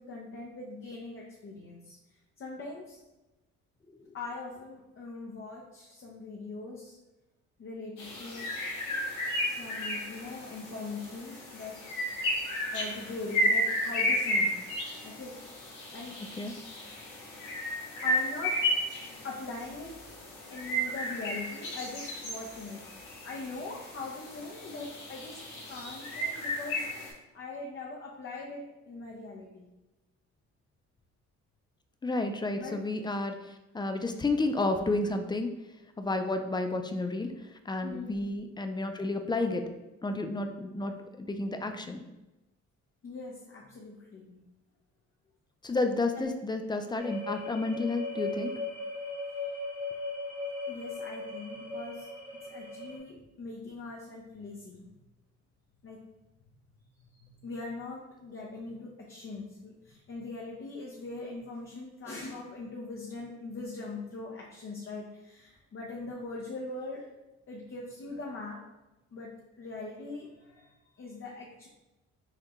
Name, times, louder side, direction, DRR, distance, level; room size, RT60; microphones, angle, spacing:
voice 1, 0.0-2.0 2.4-3.0 4.1-7.0 7.6-8.4 9.4-11.8 12.7-14.6 15.0-16.1 18.0-18.6 19.2-20.2 20.5-22.8 23.2-25.4 25.7-26.9 27.3-29.7 32.6-32.7 37.8-38.4 43.0-44.4 46.2-46.3 50.7-52.1 52.4-54.9 55.8-56.0 57.0-67.1 67.5-68.6 69.1-71.7, left 3 dB, 45° left, -2 dB, 0.8 m, -41 dB
sound 1, 8.0-27.1, equal, 80° left, 1.4 m, -33 dB
voice 2, 32.0-35.5 36.0-37.3 37.7-39.6 40.0-42.0 45.6-48.5, left 2 dB, 15° left, 6 dB, 0.4 m, -31 dB
sound 2, 47.0-53.0, left 3 dB, 25° right, 1.2 m, -38 dB
5.7 x 2.2 x 3.0 m, 1.0 s
cardioid pair, 90°, 30 cm